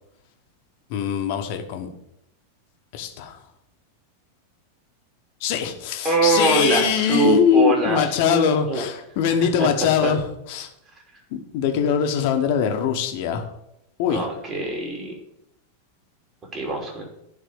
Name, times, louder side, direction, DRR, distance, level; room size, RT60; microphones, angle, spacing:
voice 1, 0.9-1.9 2.9-3.4 5.4-10.7 11.3-13.5 14.0-14.3, left 7 dB, 45° left, 5 dB, 1.2 m, -22 dB
voice 2, 6.0-8.8 9.6-9.7 10.0-10.1 14.1-15.1 16.5-17.0, right 2 dB, 30° right, 0 dB, 2.9 m, -23 dB
10.5 x 4.0 x 6.9 m, 0.79 s
figure-of-eight pair, 90°, 0 cm